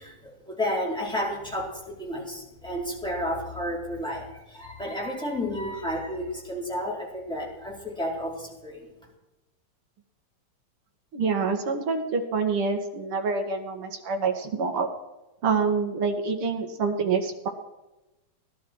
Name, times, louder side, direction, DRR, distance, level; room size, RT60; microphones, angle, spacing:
voice 1, 0.0-8.9, equal, ahead, -4 dB, 4.5 m, -32 dB
voice 2, 11.1-14.9 15.4-17.5, right 5 dB, 50° right, 3 dB, 2.6 m, -26 dB
18.5 x 12.0 x 4.8 m, 1.0 s
omnidirectional pair, 3.4 m